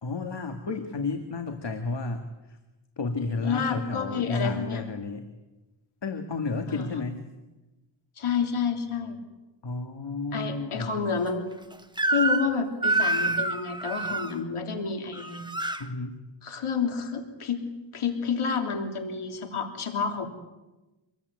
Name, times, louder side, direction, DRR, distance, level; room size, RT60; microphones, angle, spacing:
voice 1, 0.0-2.6 3.0-5.3 6.0-7.2 9.6-11.0 13.3-13.4 15.8-16.2, left 3 dB, 55° left, 5 dB, 2.2 m, -32 dB
voice 2, 3.4-4.8 6.7-6.9 8.2-9.2 10.3-11.5 12.1-15.4 16.4-20.3, left 6 dB, 90° left, 4 dB, 3.3 m, -29 dB
Crying sobbing / Screech, 12.0-12.5 12.8-14.3 15.1-15.8, right 2 dB, 10° right, 1.6 m, -26 dB
26.5 x 21.0 x 9.5 m, 1.1 s
wide cardioid pair, 105°, 49 cm